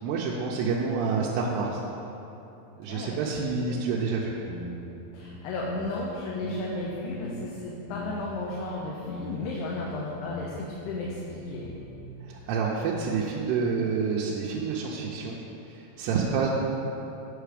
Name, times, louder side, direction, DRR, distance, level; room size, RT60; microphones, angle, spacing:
voice 1, 0.0-1.8 2.8-4.4 12.2-15.4 15.7-16.5, right 5 dB, 85° right, -4 dB, 2.7 m, -28 dB
voice 2, 2.9-3.3 3.7-3.8 5.1-11.7 16.2-16.4, left 2 dB, 80° left, -4 dB, 2.8 m, -34 dB
sound 1, 4.2-6.0 6.4-7.6 7.9-8.4 8.6-9.5 9.8-10.6 10.9-12.0, left 1 dB, 60° left, 2.1 m, -41 dB
9.1 x 5.8 x 5.0 m, 3.0 s
omnidirectional pair, 4.8 m